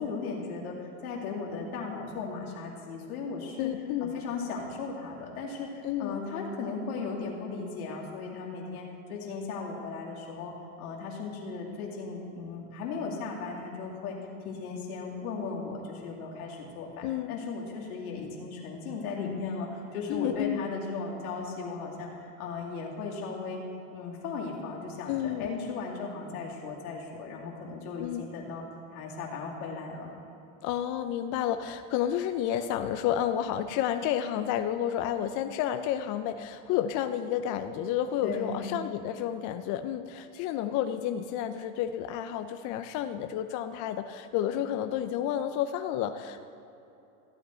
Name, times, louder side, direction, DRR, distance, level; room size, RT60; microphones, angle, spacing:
voice 1, 0.0-3.7 4.0-14.2 14.4-23.6 23.9-28.6 28.9-30.1 38.2-38.7, left 4 dB, 85° left, -2 dB, 2.5 m, -37 dB
voice 2, 3.6-4.2 5.8-6.2 17.0-17.3 20.1-20.7 25.1-25.7 28.0-28.3 30.6-46.4, left 10 dB, 45° left, 9 dB, 0.6 m, -31 dB
15.0 x 8.6 x 4.3 m, 2.9 s
supercardioid pair, 115°, 43 cm